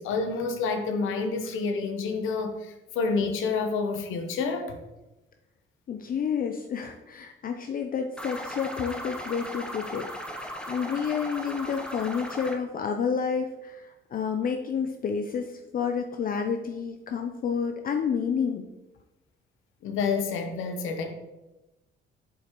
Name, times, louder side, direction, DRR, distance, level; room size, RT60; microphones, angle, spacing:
voice 1, 0.0-4.8 17.5-17.7 19.8-21.1, left 4 dB, 85° left, 6 dB, 0.9 m, -29 dB
voice 2, 5.9-18.6, left 6 dB, 45° left, 5 dB, 0.5 m, -30 dB
sound 1, 8.2-12.6, equal, 5° left, 0.8 m, -37 dB
7.3 x 5.6 x 3.0 m, 1.0 s
cardioid pair, 90°, 20 cm